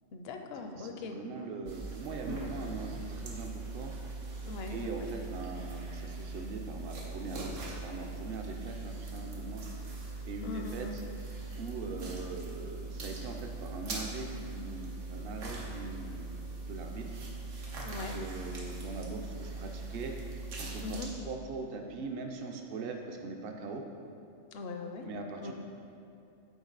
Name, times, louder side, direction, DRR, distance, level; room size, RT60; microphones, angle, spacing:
voice 1, 0.1-1.2 4.4-5.1 10.4-11.0 17.8-18.2 20.8-21.1 24.5-25.1 25.4-25.5, left 3 dB, 60° left, 5 dB, 0.7 m, -40 dB
voice 2, 0.8-3.9 4.7-9.6 10.2-11.0 11.6-17.2 17.9-23.8 25.0-25.5, right 3 dB, 55° right, 3 dB, 0.8 m, -41 dB
sound 1, 1.7-21.1, right 3 dB, 90° right, 1.4 m, -41 dB
8.0 x 4.5 x 3.9 m, 2.7 s
omnidirectional pair, 1.3 m